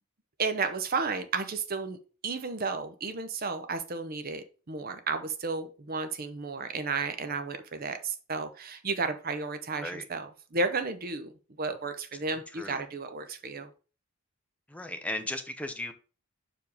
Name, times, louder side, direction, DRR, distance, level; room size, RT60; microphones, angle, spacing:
voice 1, 0.4-2.0 2.2-11.3 11.6-13.7, right 4 dB, 45° right, 9 dB, 0.8 m, -33 dB
voice 2, 12.3-12.8 14.7-15.9, left 1 dB, 5° left, 6 dB, 0.7 m, -36 dB
5.6 x 4.8 x 4.9 m, 0.36 s
head